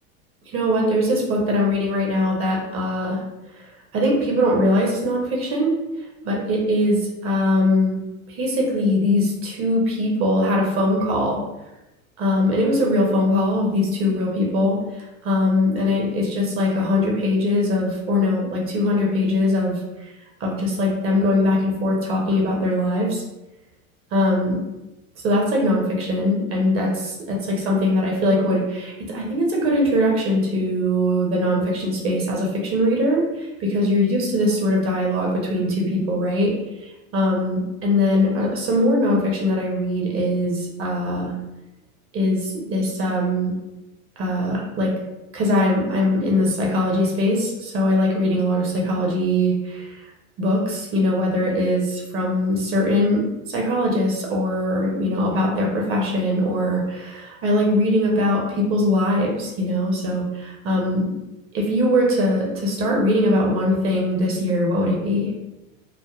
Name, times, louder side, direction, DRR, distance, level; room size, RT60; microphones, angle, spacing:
voice 1, 0.5-3.2 3.9-5.7 6.2-8.0 8.3-11.4 12.2-20.1 20.4-23.2 24.1-24.6 25.2-41.3 42.1-43.5 44.2-44.9 45.3-50.1 50.4-61.1 61.5-65.3, left 1 dB, 30° right, -2 dB, 0.6 m, -21 dB
3.4 x 2.0 x 2.3 m, 1.0 s
hypercardioid pair, 90°, 43 cm